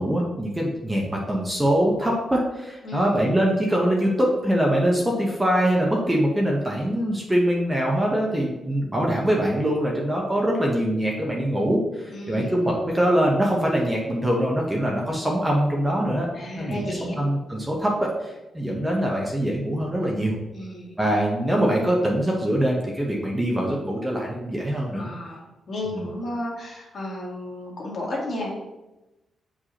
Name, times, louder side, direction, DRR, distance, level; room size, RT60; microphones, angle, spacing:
voice 1, 0.0-16.3 16.6-20.3 21.0-25.0 25.9-26.0, equal, 10° right, -2 dB, 0.8 m, -23 dB
voice 2, 2.8-3.3 12.1-12.7 16.3-17.2 20.5-21.0 24.9-28.5, left 1 dB, 40° left, -3 dB, 1.7 m, -33 dB
8.2 x 4.9 x 2.9 m, 1.0 s
wide cardioid pair, 175°, 0 cm